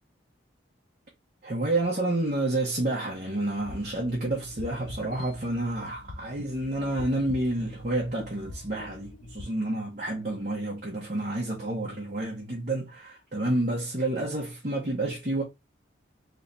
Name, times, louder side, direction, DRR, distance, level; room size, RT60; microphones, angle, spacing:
voice 1, 1.4-15.4, right 2 dB, 45° right, 1.0 m, -29 dB
sound 1, 3.6-9.4, left 2 dB, 60° left, 0.5 m, -44 dB
3.2 x 3.2 x 2.7 m
head